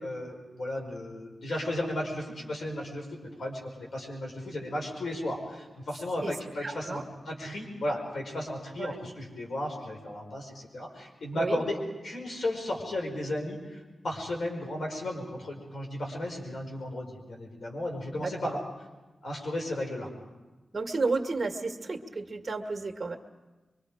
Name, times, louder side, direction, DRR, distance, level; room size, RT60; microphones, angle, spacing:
voice 1, 0.0-11.8 12.0-18.6 19.2-20.1, left 1 dB, 75° left, 0 dB, 5.1 m, -34 dB
voice 2, 6.6-7.0 8.8-9.0 11.3-11.6 18.1-18.5 20.7-23.2, right 3 dB, 40° right, 4 dB, 1.9 m, -32 dB
24.5 x 24.5 x 5.1 m, 1.1 s
wide cardioid pair, 75°, 0 cm